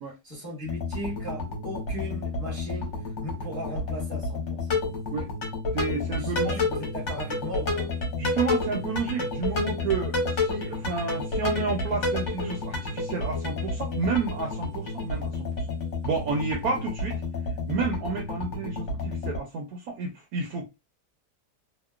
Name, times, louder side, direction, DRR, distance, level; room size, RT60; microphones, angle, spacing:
voice 1, 0.2-2.9 3.2-4.8 6.2-7.9 16.4-16.5, equal, 15° left, 0.6 m, -37 dB
sound 1, 0.6-19.4, left 3 dB, 50° left, 1.0 m, -30 dB
voice 2, 5.7-6.6 8.2-15.5 16.0-17.2 17.7-20.7, right 4 dB, 70° right, 1.0 m, -30 dB
2.9 x 2.1 x 2.3 m
omnidirectional pair, 1.8 m